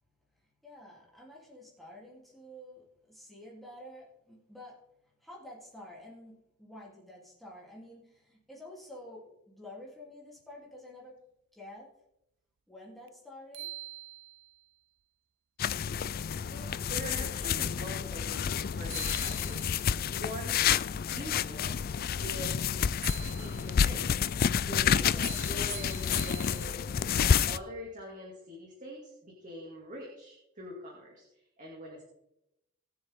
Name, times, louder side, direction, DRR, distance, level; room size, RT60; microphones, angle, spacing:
voice 1, 0.3-4.8 5.2-11.2 11.5-11.9 12.7-13.7, left 1 dB, ahead, -5 dB, 3.3 m, -49 dB
sound 1, 13.1-13.2 13.5-14.6 18.5-18.6 18.9-20.0 23.0-23.9 25.2-27.0, right 17 dB, 55° right, 0.3 m, -44 dB
sound 2, 15.6-27.6, left 8 dB, 40° left, 0.3 m, -29 dB
voice 2, 16.5-20.6 21.0-21.8 22.2-22.6 23.2-24.1 24.7-26.8 27.1-31.2 31.6-32.0, equal, 35° right, -3 dB, 2.6 m, -44 dB
20.0 x 7.2 x 3.7 m, 0.85 s
head